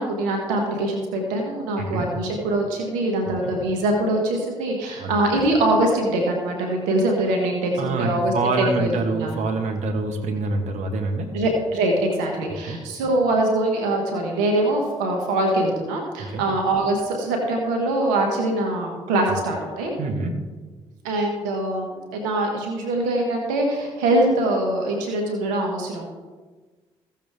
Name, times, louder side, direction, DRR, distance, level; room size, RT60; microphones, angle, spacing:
voice 1, 0.0-9.4 11.3-19.9 21.0-26.1, right 1 dB, 85° right, 2 dB, 1.6 m, -23 dB
voice 2, 1.8-2.1 3.4-3.5 5.0-5.1 7.8-11.3 12.7-12.8 16.3-16.4 20.0-20.4, right 3 dB, 65° right, 3 dB, 1.6 m, -26 dB
15.5 x 7.3 x 3.6 m, 1.3 s
hypercardioid pair, 45°, 13 cm